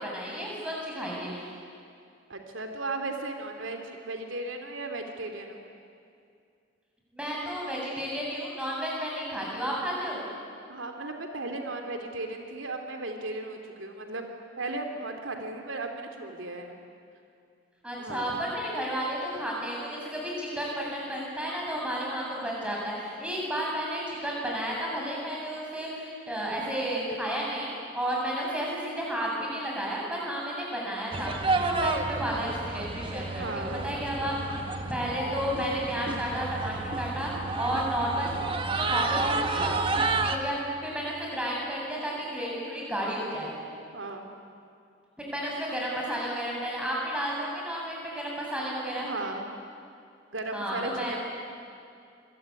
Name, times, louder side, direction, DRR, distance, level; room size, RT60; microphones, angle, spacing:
voice 1, 0.0-1.5 7.1-10.3 17.8-34.3 34.9-38.4 38.8-39.8 40.2-43.5 45.2-49.1 50.5-51.1, equal, 5° right, -3 dB, 7.7 m, -32 dB
voice 2, 2.3-5.6 10.7-14.2 14.6-16.8 18.0-18.3 33.4-33.9 38.9-39.2 43.9-44.3 49.0-49.4 50.3-51.2, right 2 dB, 85° right, 4 dB, 2.9 m, -36 dB
sound 1, 31.1-40.4, right 3 dB, 25° right, 1.6 m, -30 dB
26.5 x 22.5 x 9.8 m, 2.4 s
head